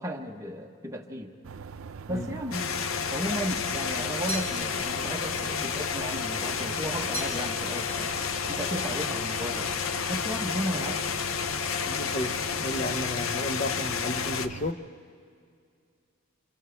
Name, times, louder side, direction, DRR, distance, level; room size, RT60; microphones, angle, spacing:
voice 1, 0.0-1.3 2.1-2.7 3.1-8.2 8.5-9.7 10.1-11.0, equal, 15° right, 2 dB, 1.2 m, -34 dB
sound 1, 1.4-14.7, right 5 dB, 80° right, 0.5 m, -42 dB
sound 2, 2.5-14.5, left 7 dB, 75° left, 0.7 m, -31 dB
sound 3, 4.3-4.9 7.1-7.6 7.9-8.6, right 2 dB, 10° left, 2.0 m, -39 dB
voice 2, 11.9-14.9, left 1 dB, 35° left, 10 dB, 0.7 m, -33 dB
29.0 x 28.0 x 3.5 m, 2.3 s
head